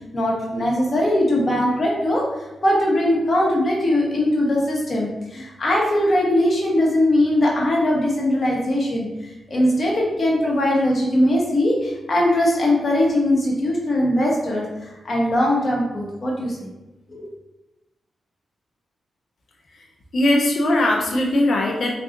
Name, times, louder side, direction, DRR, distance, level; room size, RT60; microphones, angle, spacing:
voice 1, 0.1-16.6 17.1-17.2, left 1 dB, 45° left, -3 dB, 1.0 m, -20 dB
voice 2, 20.1-21.9, left 1 dB, 65° left, 1 dB, 0.6 m, -19 dB
3.8 x 2.3 x 2.5 m, 1.0 s
cardioid pair, 65°, 0 cm